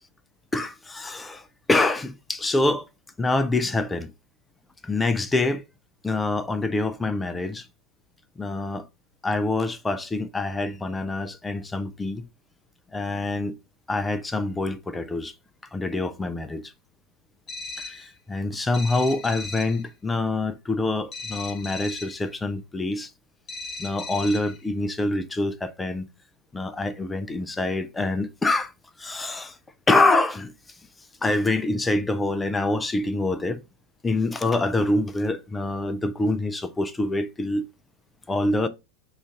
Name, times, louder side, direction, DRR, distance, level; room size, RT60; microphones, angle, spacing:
voice 1, 0.5-2.9 3.2-4.1 4.8-5.6 6.0-7.7 8.4-8.9 9.2-12.3 12.9-13.6 13.9-15.3 15.7-16.7 17.8-23.1 23.8-26.0 26.5-28.7 29.0-29.6 29.9-30.5 31.2-33.6 34.0-37.6 38.3-38.7, left 2 dB, 10° left, 0.4 m, -25 dB
sound 1, 17.5-18.1 18.7-19.8 21.1-22.2 23.5-24.6, left 4 dB, 30° left, 0.8 m, -37 dB
5.0 x 2.5 x 3.6 m
figure-of-eight pair, 90°, 0 cm